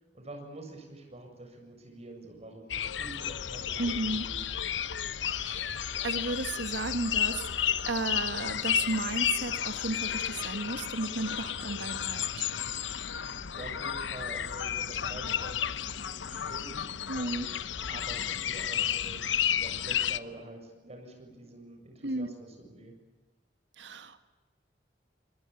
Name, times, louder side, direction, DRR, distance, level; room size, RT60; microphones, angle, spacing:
voice 1, 0.1-4.4 13.5-17.6 17.9-19.2 19.6-22.9, right 1 dB, 35° right, 3 dB, 7.2 m, -46 dB
sound 1, 2.7-20.2, left 9 dB, 90° left, 0.9 m, -32 dB
voice 2, 3.8-4.3 5.3-12.5 17.1-17.5 22.0-22.3 23.8-24.2, right 2 dB, 75° right, 10 dB, 1.7 m, -34 dB
26.0 x 21.5 x 8.6 m, 1.2 s
head